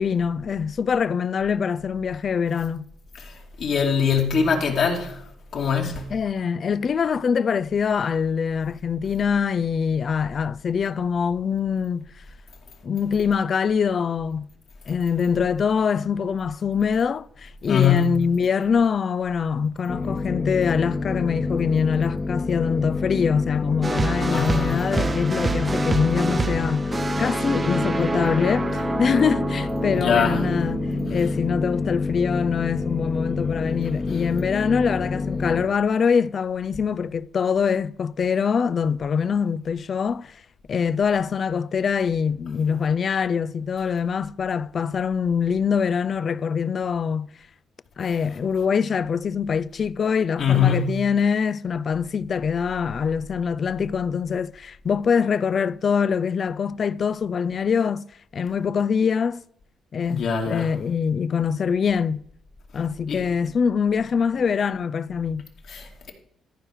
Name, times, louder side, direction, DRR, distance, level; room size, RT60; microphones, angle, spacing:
voice 1, 0.0-2.9 6.1-12.1 12.8-14.5 14.9-40.4 40.7-47.3 48.0-58.1 58.3-59.4 59.9-62.3 62.7-65.5, left 6 dB, 50° left, 0.4 m, -24 dB
voice 2, 3.2-5.2 5.5-6.1 17.7-18.2 24.3-24.9 29.9-30.4 50.4-51.0 60.0-60.7 63.1-63.2 65.7-66.1, left 6 dB, 65° left, 2.5 m, -23 dB
sound 1, 19.9-35.7, left 3 dB, 25° left, 1.1 m, -28 dB
sound 2, 23.8-32.0, right 3 dB, 25° right, 0.8 m, -28 dB
14.0 x 4.8 x 6.4 m
cardioid pair, 90°, 0 cm